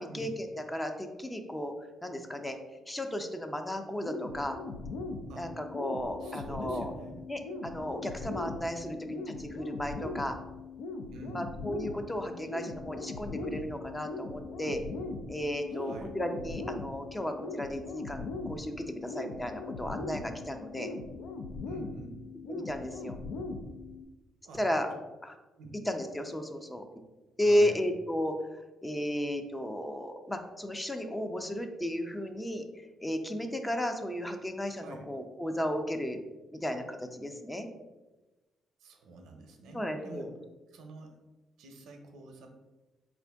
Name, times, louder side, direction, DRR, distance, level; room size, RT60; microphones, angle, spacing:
voice 1, 0.0-1.7 2.0-2.6 2.9-4.6 5.4-6.9 7.3-10.4 11.3-14.8 15.3-20.9 22.5-23.2 24.6-24.9 25.2-25.4 25.9-26.8 27.4-36.2 36.5-37.7 39.7-40.3, equal, 10° left, 6 dB, 0.5 m, -34 dB
sound 1, 4.0-24.0, left 3 dB, 85° left, 0.4 m, -40 dB
voice 2, 6.2-7.3 11.1-11.4 15.7-16.1 21.7-22.2 24.4-24.6 25.6-25.7 27.4-27.8 34.7-35.1 38.8-40.3 40.7-41.1 41.6-42.5, right 3 dB, 80° right, 4 dB, 0.6 m, -47 dB
4.2 x 2.5 x 3.4 m, 1.1 s
cardioid pair, 90°, 0 cm